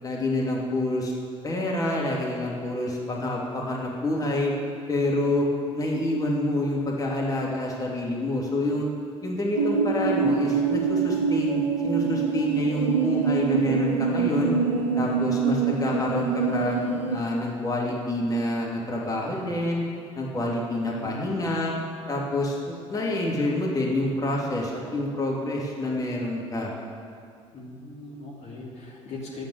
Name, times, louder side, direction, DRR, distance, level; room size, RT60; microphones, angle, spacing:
voice 1, 0.0-1.1 1.4-4.5 4.9-5.5 5.7-8.9 9.2-14.6 15.0-16.8 17.1-19.9 20.2-21.7 22.1-26.7, left 1 dB, 20° left, -3 dB, 2.9 m, -27 dB
sound 1, 9.6-17.2, right 5 dB, 85° right, 0.8 m, -25 dB
voice 2, 21.0-21.5 27.5-29.4, left 2 dB, 45° left, -4 dB, 3.0 m, -39 dB
10.5 x 9.0 x 9.7 m, 2.2 s
figure-of-eight pair, 55°, 16 cm